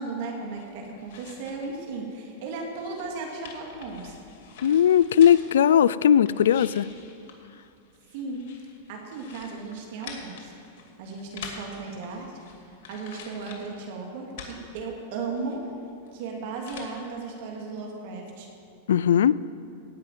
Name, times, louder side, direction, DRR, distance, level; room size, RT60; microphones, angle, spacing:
voice 1, 0.0-4.2 8.1-8.4 8.9-10.5 11.0-12.3 12.7-15.7 16.1-18.5, right 4 dB, 60° right, 0 dB, 2.4 m, -35 dB
sound 1, 0.5-1.7 2.0-5.6 6.0-13.8 14.1-17.0, left 5 dB, 60° left, 2.5 m, -46 dB
voice 2, 4.6-6.9 18.9-19.3, left 9 dB, 85° left, 17 dB, 0.4 m, -18 dB
16.5 x 5.7 x 9.2 m, 2.5 s
supercardioid pair, 135°, 0 cm